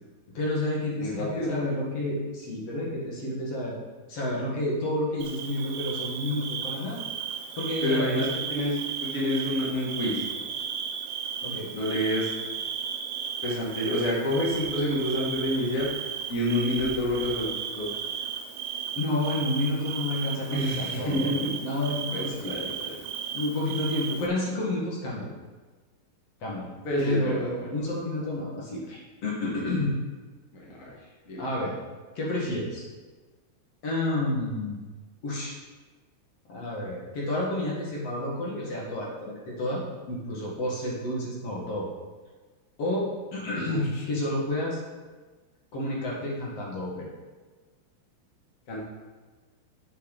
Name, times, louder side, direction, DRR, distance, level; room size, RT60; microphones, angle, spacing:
voice 1, 0.3-3.8 4.1-7.0 7.6-8.4 11.4-11.7 18.9-21.3 21.6-22.7 23.3-25.3 26.4-26.7 27.0-29.9 31.4-31.7 32.2-32.8 33.8-34.8 35.2-35.5 36.5-41.9 42.8-44.8 45.7-47.1, left 1 dB, 50° left, -4 dB, 2.3 m, -30 dB
voice 2, 1.0-1.6 7.8-10.4 11.7-12.3 13.4-15.9 16.3-17.5 17.7-17.9 20.5-21.6 22.1-22.9 26.8-27.7 30.5-30.9 31.3-31.4 43.7-44.0 48.7-48.8, left 1 dB, 70° left, -4 dB, 0.7 m, -28 dB
Bird / Cricket, 5.2-24.3, right 7 dB, 80° right, 3.0 m, -35 dB
9.9 x 8.0 x 4.1 m, 1.3 s
omnidirectional pair, 4.9 m